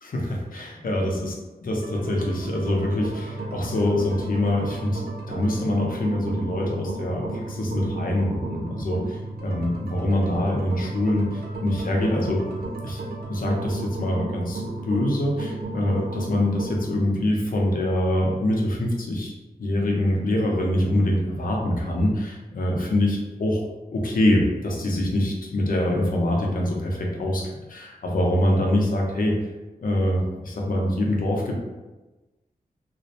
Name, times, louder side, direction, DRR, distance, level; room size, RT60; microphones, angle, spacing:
voice 1, 0.0-1.3 1.6-12.4 12.8-13.0 13.3-19.3 19.6-23.6 23.9-29.4 29.8-31.5, left 1 dB, 60° left, -1 dB, 0.6 m, -24 dB
sound 1, 1.7-17.1, right 2 dB, 80° right, 0.6 m, -33 dB
2.4 x 2.0 x 2.7 m, 1.1 s
wide cardioid pair, 85°, 16 cm